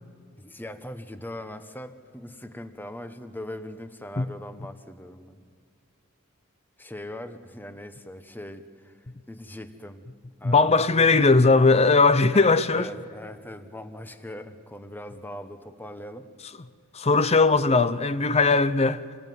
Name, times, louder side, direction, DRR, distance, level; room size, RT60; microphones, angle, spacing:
voice 1, 0.4-5.4 6.8-8.9 9.3-10.0 10.4-11.1 12.3-16.3, left 1 dB, 10° left, 1.2 m, -40 dB
voice 2, 10.4-12.9 16.9-19.0, left 3 dB, 30° left, 0.7 m, -19 dB
27.5 x 20.0 x 9.5 m
head